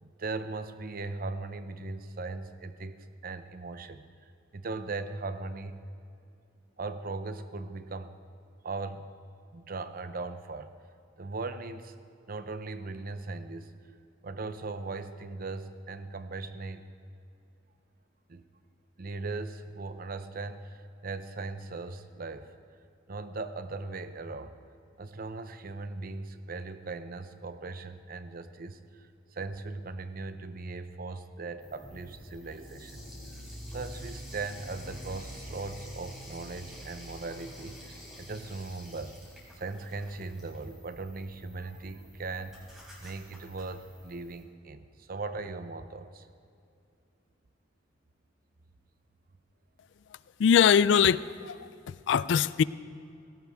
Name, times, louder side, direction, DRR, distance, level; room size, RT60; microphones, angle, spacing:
voice 1, 0.0-3.0 3.2-5.8 6.8-8.1 8.6-9.1 9.5-10.8 11.2-12.0 12.3-13.7 14.2-16.9 18.3-18.5 19.0-22.5 23.1-24.6 25.0-33.0 33.3-39.2 39.5-46.3, right 3 dB, 50° right, 11 dB, 0.7 m, -39 dB
sound 1, 31.6-44.4, equal, ahead, 3.8 m, -47 dB
Bass guitar, 32.9-39.2, right 1 dB, 45° left, 1.8 m, -54 dB
voice 2, 50.4-52.6, left 7 dB, 65° left, 18 dB, 0.3 m, -23 dB
18.0 x 16.5 x 3.5 m, 2.5 s
head